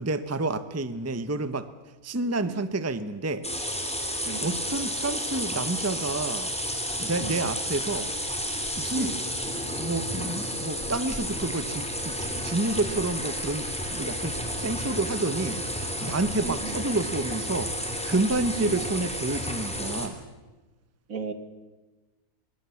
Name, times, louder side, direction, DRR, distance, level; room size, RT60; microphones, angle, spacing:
voice 1, 0.0-1.7 2.0-3.5 4.4-6.5 7.0-8.1 8.8-9.1 9.8-15.6 16.0-20.1, right 2 dB, 10° right, 12 dB, 0.8 m, -29 dB
sound 1, 3.4-20.1, equal, 5° left, 3.3 m, -32 dB
voice 2, 4.3-4.6 7.2-7.4 8.9-9.2 16.4-16.8 18.5-18.8 21.1-21.3, right 5 dB, 65° right, 10 dB, 2.1 m, -35 dB
24.0 x 22.5 x 7.1 m, 1.2 s
omnidirectional pair, 1.6 m